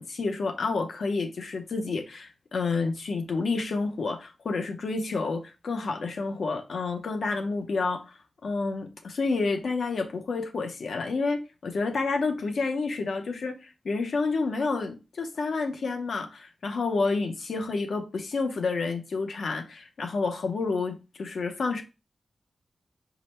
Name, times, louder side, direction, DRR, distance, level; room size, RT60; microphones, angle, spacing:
voice 1, 0.0-21.8, left 4 dB, 80° left, 0.7 m, -29 dB
4.9 x 2.1 x 4.3 m
wide cardioid pair, 155°, 0 cm